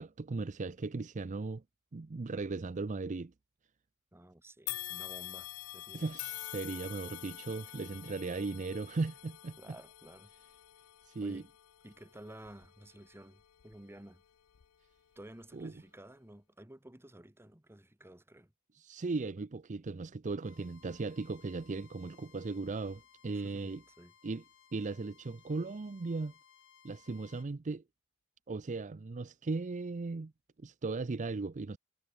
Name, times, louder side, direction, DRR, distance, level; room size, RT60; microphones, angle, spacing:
voice 1, 0.0-1.6 1.9-3.3 5.9-9.6 11.1-11.4 15.5-15.7 18.7-23.8 24.2-24.4 24.7-26.3 26.8-27.8 28.5-30.3 30.6-31.8, right 3 dB, 35° right, 0.5 m, -37 dB
voice 2, 4.1-6.1 9.6-10.3 11.2-11.5 11.8-14.2 15.1-18.5 23.3-24.1, right 1 dB, 10° right, 1.2 m, -53 dB
sound 1, 4.7-14.0 14.5-14.7 15.6-15.7, left 17 dB, 80° left, 0.5 m, -46 dB
Bowed string instrument, 20.4-27.5, left 7 dB, 60° left, 4.4 m, -63 dB
head